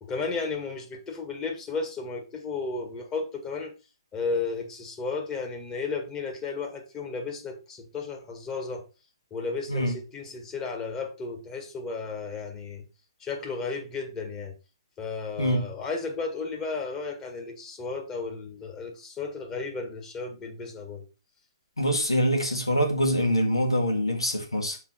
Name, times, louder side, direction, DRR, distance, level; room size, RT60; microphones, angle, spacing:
voice 1, 0.0-3.7 4.1-8.8 9.3-12.8 13.2-14.5 15.0-21.0, left 4 dB, 20° left, 1.7 m, -34 dB
voice 2, 15.4-15.7 21.8-24.8, equal, 90° left, 1.9 m, -24 dB
6.6 x 4.5 x 4.4 m
figure-of-eight pair, 125°, 3 cm